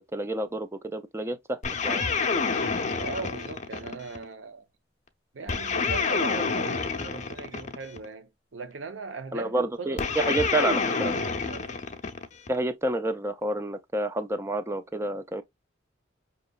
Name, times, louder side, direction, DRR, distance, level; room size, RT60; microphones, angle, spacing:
voice 1, 0.0-2.0 9.3-11.1 12.5-15.4, right 2 dB, 15° right, 0.5 m, -29 dB
sound 1, 1.6-4.2 5.5-8.1 10.0-12.6, left 4 dB, 40° left, 0.6 m, -28 dB
voice 2, 2.9-4.6 5.3-10.5 11.1-11.7, right 4 dB, 80° right, 0.7 m, -39 dB
5.3 x 2.9 x 2.3 m
head